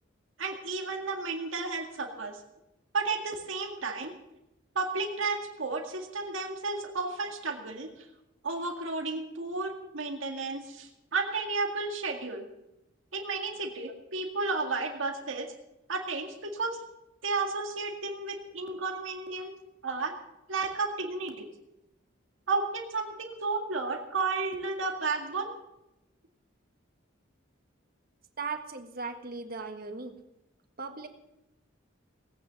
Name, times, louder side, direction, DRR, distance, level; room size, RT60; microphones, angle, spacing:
voice 1, 0.4-2.4 2.9-4.1 4.8-8.1 8.4-12.5 13.1-15.5 15.9-16.8 17.2-19.5 19.8-20.1 20.5-21.5 22.5-25.5, right 3 dB, 85° right, 3 dB, 2.0 m, -32 dB
voice 2, 28.4-30.1 30.8-31.1, right 4 dB, 50° right, 7 dB, 1.5 m, -37 dB
18.5 x 9.2 x 7.4 m, 0.91 s
head